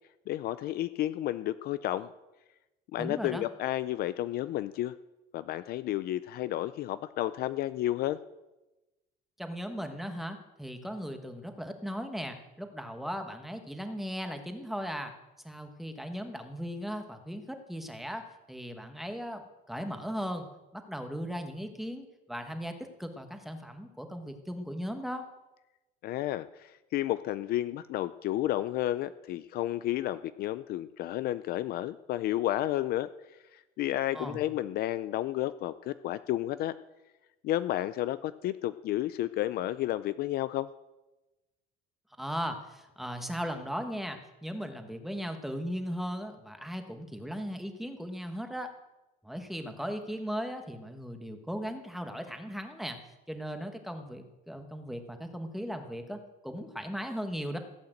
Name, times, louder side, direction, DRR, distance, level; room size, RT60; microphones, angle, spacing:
voice 1, 0.3-2.1 2.9-4.9 5.3-8.2 26.0-33.1 33.5-36.7 37.4-40.7, left 14 dB, 50° left, 14 dB, 0.5 m, -31 dB
voice 2, 3.0-3.4 9.4-15.1 15.4-19.4 19.7-20.5 20.7-25.3 34.1-34.4 42.2-48.7 49.2-53.0 53.3-57.6, equal, ahead, 6 dB, 1.3 m, -37 dB
16.0 x 8.7 x 7.8 m, 1.0 s
cardioid pair, 170°, 21 cm